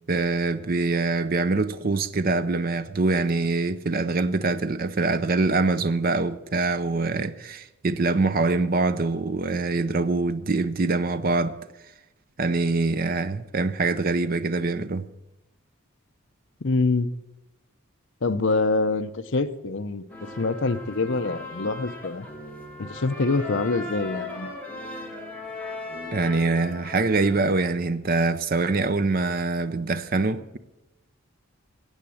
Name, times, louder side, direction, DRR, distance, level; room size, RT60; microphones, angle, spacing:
voice 1, 0.1-11.6 12.4-15.1 26.1-30.6, right 3 dB, 40° right, 0.6 m, -24 dB
voice 2, 16.6-17.1 18.2-20.0 20.4-22.3 22.8-24.5, left 3 dB, 60° left, 0.7 m, -25 dB
sound 1, 20.1-27.7, left 2 dB, 5° left, 2.0 m, -38 dB
15.5 x 8.5 x 7.7 m
head